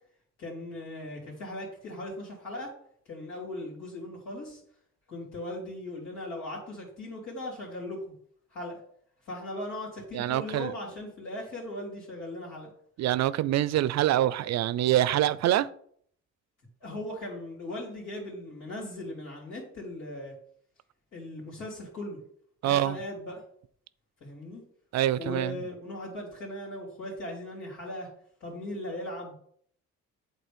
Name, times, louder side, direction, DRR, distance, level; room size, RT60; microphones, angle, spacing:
voice 1, 0.4-2.7 3.1-4.6 5.1-8.1 8.5-8.8 9.2-12.7 16.8-20.3 21.1-22.2 22.6-23.4 24.2-24.6 25.2-28.1 28.4-29.3, left 1 dB, 85° left, 3.2 m, -38 dB
voice 2, 10.1-10.7 13.0-15.7 22.6-23.0 24.9-25.6, right 13 dB, 60° right, 0.4 m, -25 dB
8.0 x 4.0 x 5.2 m
cardioid pair, 90°, 30 cm